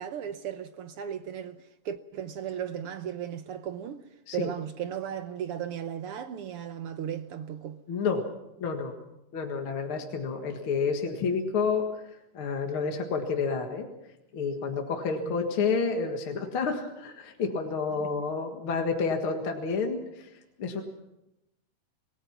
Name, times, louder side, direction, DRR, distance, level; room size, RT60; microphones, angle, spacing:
voice 1, 0.0-1.6 1.8-4.0 4.3-7.8 15.2-15.3 17.9-18.1, right 9 dB, 75° right, 1.3 m, -36 dB
voice 2, 7.9-8.2 8.6-8.9 9.3-13.9 14.3-20.8, left 5 dB, 45° left, 2.3 m, -30 dB
28.0 x 18.0 x 5.9 m
omnidirectional pair, 3.6 m